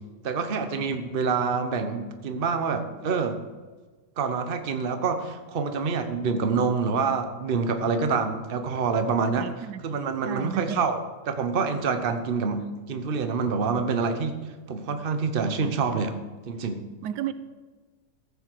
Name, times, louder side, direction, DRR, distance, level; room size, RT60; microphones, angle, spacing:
voice 1, 0.2-3.4 4.2-11.0 11.3-14.3 14.7-16.2 16.5-16.9, right 5 dB, 40° right, 1.0 m, -27 dB
voice 2, 9.4-9.8 10.2-10.8 17.0-17.3, right 10 dB, 90° right, 1.3 m, -32 dB
15.0 x 6.9 x 6.6 m
omnidirectional pair, 1.7 m